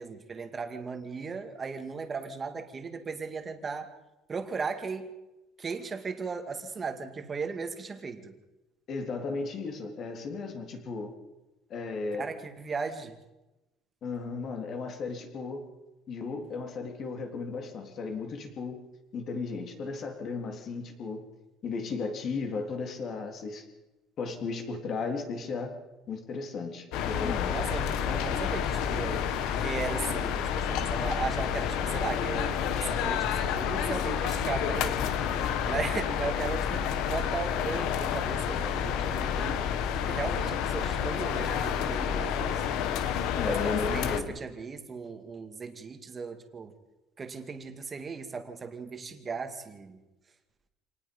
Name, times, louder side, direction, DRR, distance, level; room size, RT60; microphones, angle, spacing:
voice 1, 0.0-3.9 4.3-5.1 5.6-8.3 12.2-13.2 27.5-29.3 29.6-35.4 35.6-39.6 40.1-42.6 43.4-46.7 47.2-50.0, right 5 dB, 20° right, 6 dB, 2.1 m, -37 dB
voice 2, 8.9-11.1 11.7-12.3 14.0-15.7 16.1-18.8 19.1-21.2 21.6-23.6 24.2-25.7 26.1-27.6 43.4-44.4, left 4 dB, 35° left, 4 dB, 3.4 m, -35 dB
sound 1, 26.9-44.2, left 8 dB, 65° left, 1.6 m, -29 dB
27.5 x 19.0 x 5.4 m, 1.0 s
cardioid pair, 160°, 0 cm